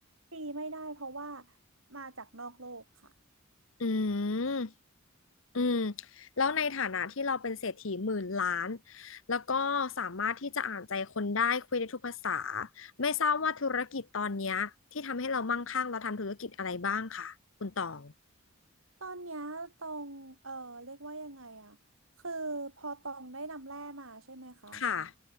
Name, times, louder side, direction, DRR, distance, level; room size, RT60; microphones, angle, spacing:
voice 1, 0.3-1.5 1.9-3.1 19.0-21.8 22.2-24.8, right 2 dB, 75° right, 6.9 m, -41 dB
voice 2, 3.8-4.7 5.5-17.3 17.6-18.1 24.7-25.1, left 5 dB, 70° left, 1.0 m, -32 dB
head